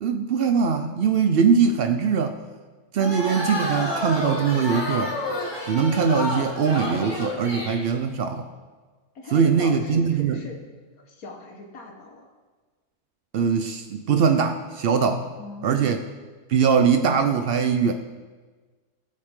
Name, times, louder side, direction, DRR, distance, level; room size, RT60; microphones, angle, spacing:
voice 1, 0.0-2.4 2.9-5.1 5.6-8.5 9.3-10.5 13.3-15.3 15.6-16.0 16.5-17.9, right 6 dB, 85° right, 7 dB, 0.5 m, -21 dB
sound 1, 3.0-7.8, left 1 dB, 15° left, 1.7 m, -29 dB
voice 2, 9.2-10.6 11.1-12.2 15.4-15.9, left 3 dB, 65° left, 2 dB, 1.7 m, -39 dB
15.5 x 7.5 x 3.7 m, 1.4 s
omnidirectional pair, 1.6 m